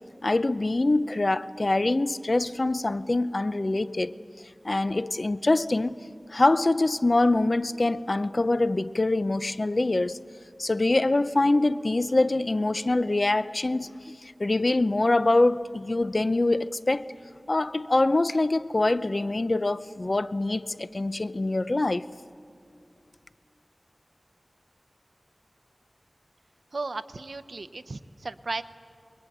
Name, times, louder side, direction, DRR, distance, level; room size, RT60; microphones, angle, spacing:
voice 1, 0.2-4.2 4.6-6.0 6.3-10.2 10.6-17.1 17.5-22.0, left 2 dB, 55° left, 0.7 m, -24 dB
voice 2, 26.7-28.6, right 3 dB, 85° right, 0.8 m, -35 dB
26.5 x 22.0 x 9.2 m
wide cardioid pair, 45°, 0 cm